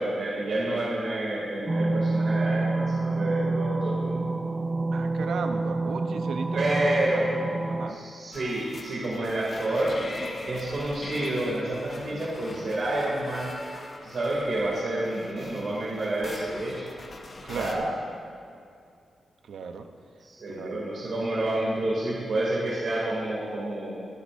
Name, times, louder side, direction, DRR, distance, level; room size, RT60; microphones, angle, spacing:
voice 1, 0.0-4.3 6.5-7.4 7.9-13.5 14.0-16.8 17.5-17.9 20.2-23.9, right 1 dB, 55° right, -7 dB, 2.5 m, -29 dB
sound 1, 1.7-7.9, right 3 dB, 25° right, 0.5 m, -28 dB
voice 2, 4.9-6.8 7.1-7.3 7.7-8.0 17.4-17.9 19.4-19.9 20.5-20.8, right 5 dB, 80° right, 6 dB, 0.7 m, -36 dB
sound 2, 8.3-17.7, left 2 dB, 35° left, 1.0 m, -42 dB
23.0 x 8.2 x 2.6 m, 2.4 s
wide cardioid pair, 155°, 0 cm